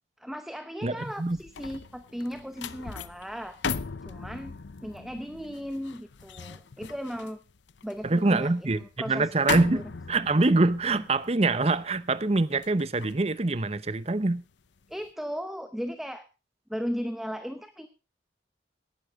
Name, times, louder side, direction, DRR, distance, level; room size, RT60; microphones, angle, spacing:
voice 1, 0.2-3.6 4.0-7.4 7.8-9.3 9.7-9.8 14.9-16.3 16.7-17.9, equal, ahead, 0.8 m, -36 dB
voice 2, 0.8-1.4 8.0-9.8 10.1-14.4, right 2 dB, 35° right, 0.8 m, -25 dB
sound 1, 1.1-14.4 14.8-15.1, left 5 dB, 85° left, 0.7 m, -38 dB
18.0 x 11.5 x 3.6 m
head